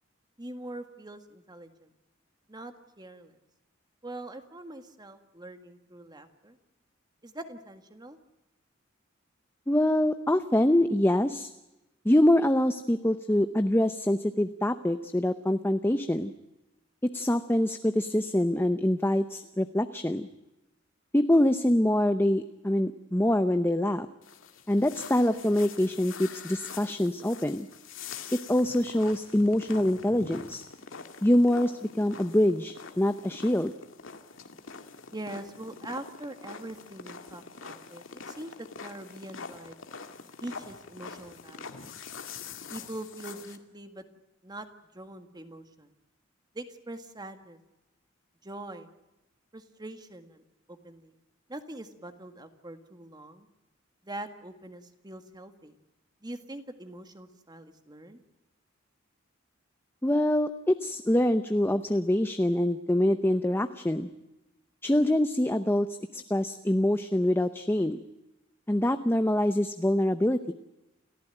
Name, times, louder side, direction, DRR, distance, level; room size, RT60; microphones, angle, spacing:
voice 1, 0.4-1.9 2.5-3.3 4.0-6.6 7.2-8.2 35.1-39.8 40.4-41.8 42.7-44.0 44.4-44.7 44.9-46.0 46.5-47.6 48.4-48.9 49.5-50.4 50.7-51.2 51.5-53.5 54.0-55.8 56.2-58.2, right 1 dB, 20° right, 8 dB, 1.8 m, -43 dB
voice 2, 9.7-11.5 12.0-16.3 17.0-20.3 21.1-24.1 24.7-27.7 28.3-30.6 31.2-33.7 60.0-64.1 64.8-65.9 66.1-68.0 68.7-70.5, left 1 dB, 10° left, 9 dB, 0.7 m, -25 dB
sound 1, 24.2-43.6, left 5 dB, 90° left, 2.1 m, -45 dB
29.0 x 15.0 x 9.0 m, 0.97 s
head